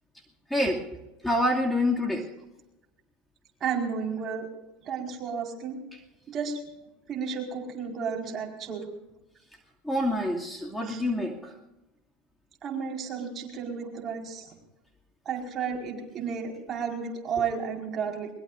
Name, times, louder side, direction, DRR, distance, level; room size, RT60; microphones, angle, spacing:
voice 1, 0.5-0.8 1.2-2.3 9.8-11.5, left 1 dB, 5° left, -1 dB, 2.4 m, -26 dB
voice 2, 3.6-4.5 4.8-5.8 6.3-6.6 7.1-8.9 10.9-11.0 12.6-14.5 15.2-18.3, right 6 dB, 35° right, 0 dB, 4.9 m, -32 dB
22.0 x 21.5 x 2.6 m, 0.99 s
hypercardioid pair, 95°, 0 cm